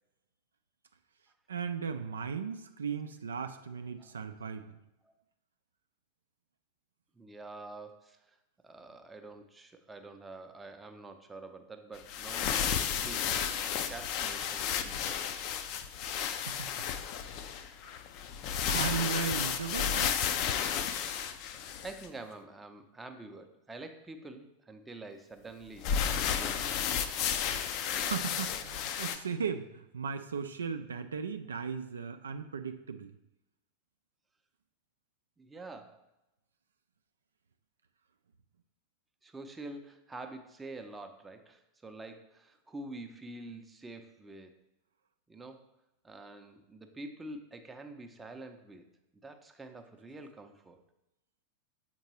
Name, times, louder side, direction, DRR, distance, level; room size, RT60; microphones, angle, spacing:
voice 1, 1.5-4.8 16.4-16.7 17.8-18.0 18.7-20.4 28.0-33.1, right 6 dB, 70° right, 8 dB, 0.3 m, -37 dB
voice 2, 7.1-8.4 8.6-15.4 16.7-16.9 18.3-18.4 21.8-25.9 26.2-26.7 29.0-29.2 35.4-36.0 39.2-44.5 45.3-45.7 46.0-48.9 49.2-50.8, right 2 dB, 10° right, 6 dB, 0.6 m, -47 dB
sound 1, 12.0-22.1 25.8-29.2, left 8 dB, 40° left, 0.4 m, -32 dB
7.2 x 4.4 x 3.0 m, 0.92 s
figure-of-eight pair, 90°, 0 cm